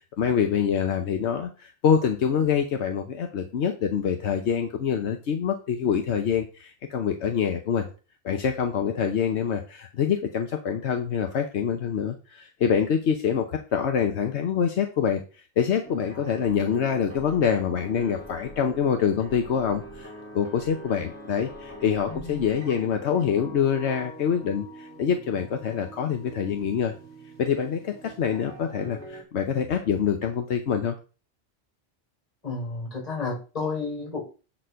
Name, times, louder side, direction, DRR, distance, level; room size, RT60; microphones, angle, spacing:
voice 1, 0.2-7.9 8.2-13.5 13.7-26.9 27.4-30.9, left 7 dB, 80° left, 5 dB, 1.1 m, -25 dB
sound 1, 15.8-29.2, right 1 dB, 15° left, 3.1 m, -43 dB
voice 2, 22.1-22.4 32.4-34.2, left 4 dB, 35° left, -3 dB, 5.2 m, -31 dB
7.7 x 4.3 x 5.6 m, 0.35 s
omnidirectional pair, 1.1 m